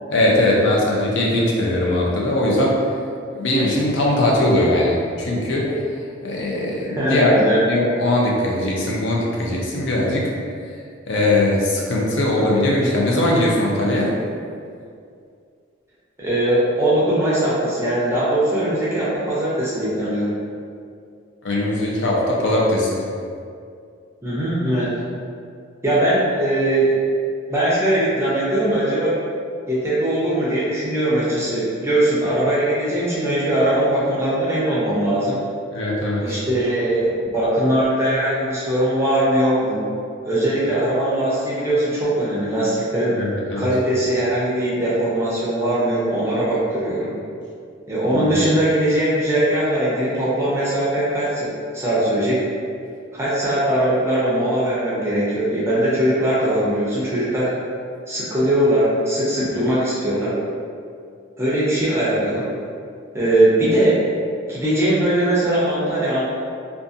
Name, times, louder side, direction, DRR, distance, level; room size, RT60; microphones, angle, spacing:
voice 1, 0.1-2.8 3.3-5.8 6.2-7.3 7.7-10.3 11.1-14.1 21.4-23.0 35.7-36.3 43.2-43.7 48.1-48.3, left 1 dB, 65° left, -3 dB, 0.5 m, -20 dB
voice 2, 6.9-7.6 16.2-20.3 24.2-25.0 25.8-27.0 27.5-29.2 29.7-35.4 36.2-39.8 40.2-43.2 43.6-47.1 47.9-52.4 53.1-57.5 58.1-60.4 61.4-62.5 63.1-64.0 64.5-66.3, right 1 dB, 15° right, -8 dB, 0.5 m, -20 dB
2.5 x 2.3 x 2.5 m, 2.3 s
head